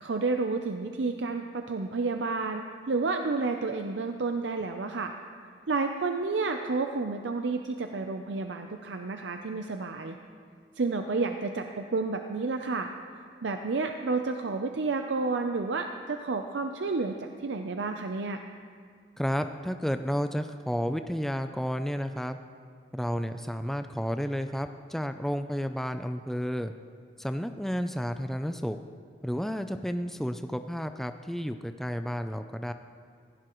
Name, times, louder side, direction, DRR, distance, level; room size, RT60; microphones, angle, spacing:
voice 1, 0.0-5.1 5.7-10.2 10.8-12.9 13.4-18.4, right 3 dB, 80° right, 5 dB, 0.6 m, -30 dB
voice 2, 19.2-22.4 22.9-26.7 27.2-28.8 29.2-32.7, equal, ahead, 8 dB, 0.3 m, -31 dB
16.5 x 16.0 x 3.1 m, 2.2 s
head